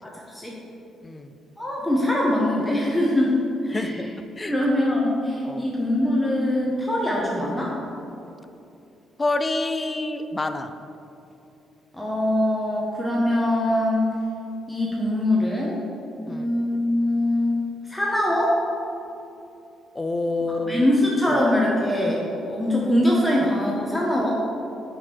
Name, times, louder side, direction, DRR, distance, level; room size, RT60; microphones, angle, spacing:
voice 1, 0.0-0.6 1.6-4.1 4.5-7.7 11.9-14.1 14.7-15.8 16.3-17.6 17.9-18.6 20.5-24.3, left 1 dB, 5° left, -4 dB, 1.2 m, -23 dB
voice 2, 3.7-4.1 4.4-4.5 5.4-5.7 9.2-10.7 16.3-16.5 20.0-20.9 21.3-21.4, left 2 dB, 25° left, 9 dB, 0.5 m, -27 dB
5.9 x 5.0 x 6.2 m, 2.8 s
cardioid pair, 90°, 0 cm